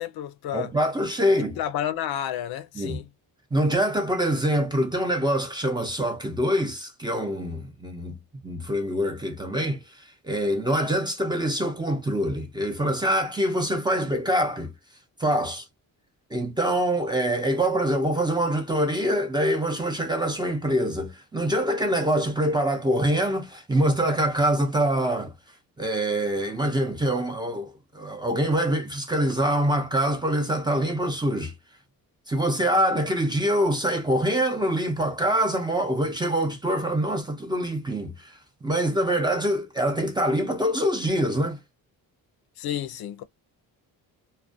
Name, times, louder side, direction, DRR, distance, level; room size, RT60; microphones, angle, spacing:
voice 1, 0.0-0.7 1.6-3.1 42.6-43.2, left 11 dB, 80° left, 0.5 m, -31 dB
voice 2, 0.5-1.6 2.8-3.0 3.5-8.2 8.4-14.7 15.2-15.7 16.3-25.3 25.8-31.5 32.3-41.6, right 1 dB, 10° right, 0.5 m, -25 dB
2.4 x 2.1 x 2.5 m
cardioid pair, 125°, 37 cm